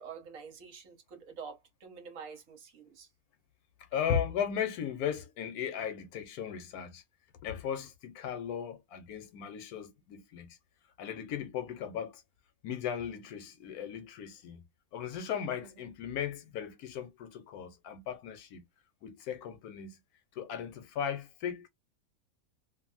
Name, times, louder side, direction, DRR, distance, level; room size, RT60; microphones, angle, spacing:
voice 1, 0.0-3.1 15.6-15.9, right 6 dB, 70° right, 1.3 m, -47 dB
voice 2, 3.9-7.0 7.4-10.6 11.0-12.2 12.6-14.6 14.9-18.6 19.0-20.0 20.3-21.7, left 8 dB, 90° left, 1.2 m, -36 dB
2.7 x 2.6 x 2.5 m
omnidirectional pair, 1.6 m